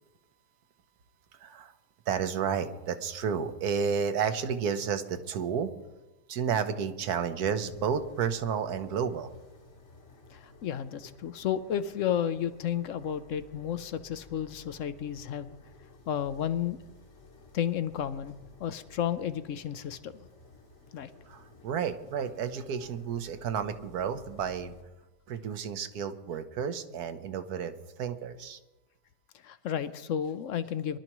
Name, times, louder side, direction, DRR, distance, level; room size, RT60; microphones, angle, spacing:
voice 1, 1.4-1.7 2.1-5.7 6.3-9.3 21.3-24.7 25.3-27.7 28.0-28.6, right 7 dB, 70° right, 9 dB, 1.3 m, -31 dB
sound 1, 7.3-24.8, left 3 dB, 45° left, 1.3 m, -55 dB
voice 2, 10.3-15.5 16.1-16.8 17.5-20.1 20.9-21.1 29.4-31.0, left 9 dB, 65° left, 13 dB, 0.8 m, -32 dB
23.5 x 12.0 x 3.0 m, 1.1 s
omnidirectional pair, 1.8 m